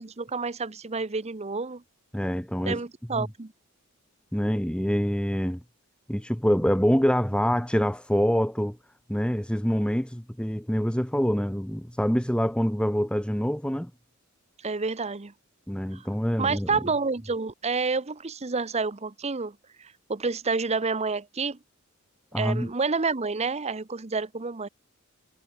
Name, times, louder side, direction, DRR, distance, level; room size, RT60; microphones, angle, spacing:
voice 1, 0.0-1.8 2.6-3.5 14.6-15.3 15.9-16.0 16.4-21.6 22.4-24.7, right 4 dB, 30° right, 0.8 m, -29 dB
voice 2, 2.1-2.8 3.1-3.3 4.3-5.6 6.1-8.8 9.1-13.9 15.7-16.7 22.3-22.7, equal, 5° left, 1.7 m, -25 dB
head